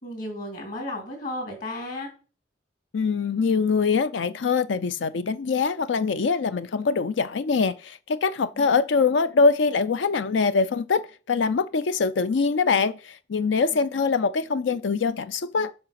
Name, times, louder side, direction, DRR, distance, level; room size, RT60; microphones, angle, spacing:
voice 1, 0.0-2.1 8.6-8.8, left 1 dB, 50° left, 4.1 m, -34 dB
voice 2, 2.9-15.8, left 4 dB, 80° left, 0.5 m, -23 dB
8.7 x 5.6 x 5.8 m
head